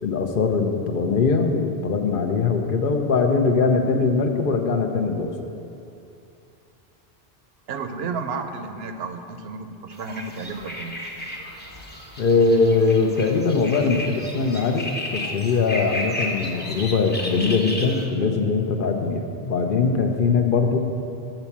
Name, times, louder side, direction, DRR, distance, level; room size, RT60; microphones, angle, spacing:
voice 1, 0.0-5.3 12.2-20.8, left 4 dB, 60° left, 5 dB, 0.8 m, -21 dB
voice 2, 7.7-11.0, right 4 dB, 75° right, 7 dB, 0.8 m, -32 dB
sound 1, 9.9-18.0, left 1 dB, 10° left, 0.8 m, -33 dB
7.9 x 4.4 x 7.1 m, 2.7 s
omnidirectional pair, 1.1 m